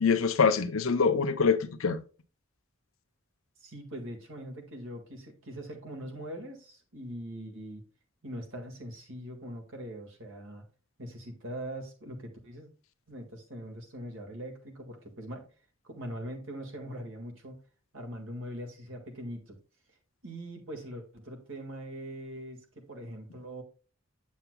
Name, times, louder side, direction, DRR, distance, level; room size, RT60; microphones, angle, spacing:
voice 1, 0.0-2.0, left 5 dB, 80° left, 0.7 m, -25 dB
voice 2, 3.6-7.8 8.2-10.6 11.0-12.7 13.1-15.4 15.8-17.6 17.9-19.6 20.2-23.6, equal, 70° right, 1.7 m, -42 dB
8.0 x 7.2 x 2.2 m
head